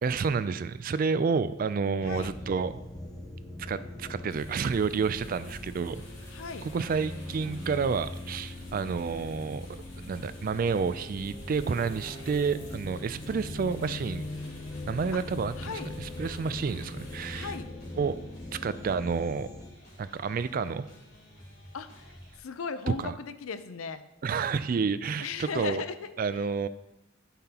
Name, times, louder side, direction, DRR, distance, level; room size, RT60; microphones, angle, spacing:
voice 1, 0.0-2.8 3.6-6.0 6.6-14.3 14.9-17.5 18.0-18.2 18.5-19.5 20.0-20.9 23.0-23.1 24.2-25.8 26.2-26.7, right 5 dB, 45° right, 14 dB, 0.3 m, -30 dB
voice 2, 2.0-2.3 6.3-6.7 15.1-15.2 15.6-15.9 17.3-17.7 21.7-24.0 25.2-26.5, left 5 dB, 85° left, 12 dB, 0.5 m, -37 dB
sound 1, 2.0-19.7, left 1 dB, 20° left, 0.6 m, -41 dB
sound 2, 4.3-17.6, equal, 65° left, 2.9 m, -49 dB
sound 3, 6.0-22.4, equal, 35° left, 3.2 m, -52 dB
13.0 x 5.8 x 2.9 m, 0.90 s
head